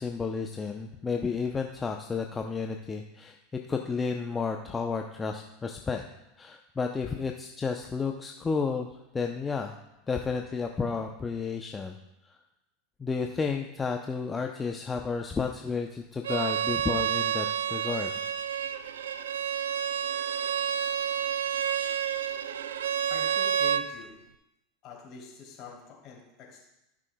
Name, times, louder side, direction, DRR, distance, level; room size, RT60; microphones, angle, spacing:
voice 1, 0.0-3.4 3.7-6.0 6.4-8.9 9.1-9.8 10.1-11.9 12.3-12.4 13.0-18.1, left 5 dB, 20° left, 3 dB, 0.6 m, -32 dB
Bowed string instrument, 16.2-23.9, right 8 dB, 80° right, 0.4 m, -29 dB
voice 2, 23.1-24.1 24.8-26.6, left 5 dB, 50° left, -2 dB, 3.1 m, -45 dB
15.0 x 6.1 x 2.3 m, 0.89 s
hypercardioid pair, 90°, 0 cm